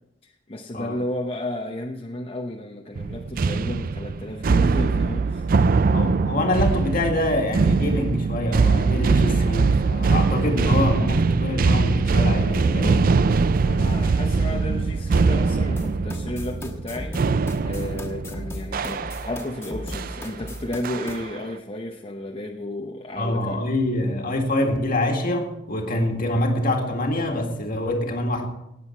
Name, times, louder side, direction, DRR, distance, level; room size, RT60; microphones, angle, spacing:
voice 1, 0.2-5.5 13.6-23.6, left 1 dB, 30° left, 0.8 m, -33 dB
sound 1, 3.0-19.5 19.9-20.2 20.8-21.4, right 4 dB, 50° right, 0.4 m, -22 dB
voice 2, 5.9-13.1 23.2-28.5, left 1 dB, 50° left, 2.0 m, -25 dB
sound 2, 15.8-21.2, left 1 dB, 15° left, 1.3 m, -35 dB
18.0 x 7.9 x 4.5 m
head